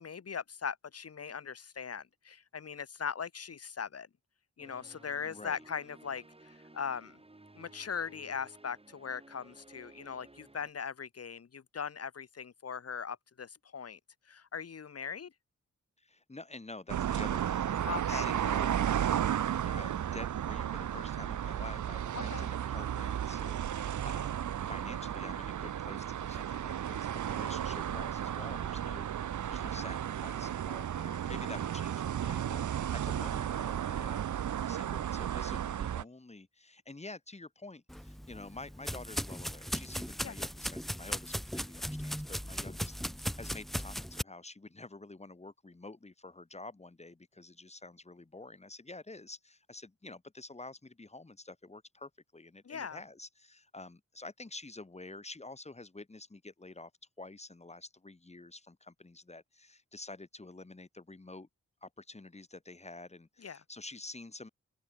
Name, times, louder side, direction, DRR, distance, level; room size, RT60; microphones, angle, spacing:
voice 1, 0.0-4.1 4.6-7.2 7.5-14.0 14.3-15.3 17.8-18.3 22.1-22.4 33.1-33.3 40.2-40.3 42.6-42.7 52.6-53.0 63.4-63.6, left 6 dB, 55° left, 1.4 m, -40 dB
sound 1, 4.6-10.7, right 2 dB, 20° right, 3.7 m, -57 dB
voice 2, 5.2-5.6 16.0-56.9 57.2-61.5 61.8-64.5, left 2 dB, 20° left, 2.4 m, -49 dB
sound 2, 16.9-36.0, right 10 dB, 90° right, 0.7 m, -34 dB
sound 3, 37.9-44.2, equal, ahead, 0.4 m, -38 dB
open air
wide cardioid pair, 125°, 29 cm